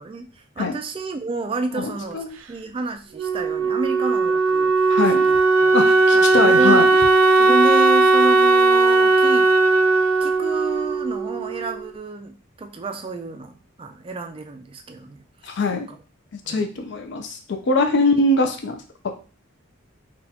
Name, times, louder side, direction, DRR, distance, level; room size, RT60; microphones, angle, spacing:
voice 1, 0.0-5.7 6.1-6.8 7.2-9.5 10.2-15.2 15.9-16.0 16.5-16.6 17.8-18.1 18.4-18.5, right 2 dB, 25° right, 6 dB, 0.3 m, -30 dB
voice 2, 1.7-2.4 4.9-5.2 5.7-6.9 15.4-15.9 16.3-19.1, left 2 dB, 55° left, 5 dB, 0.4 m, -22 dB
Wind instrument woodwind instrument, 3.2-11.9, right 3 dB, 90° right, 0.4 m, -17 dB
4.0 x 2.3 x 2.8 m, 0.36 s
head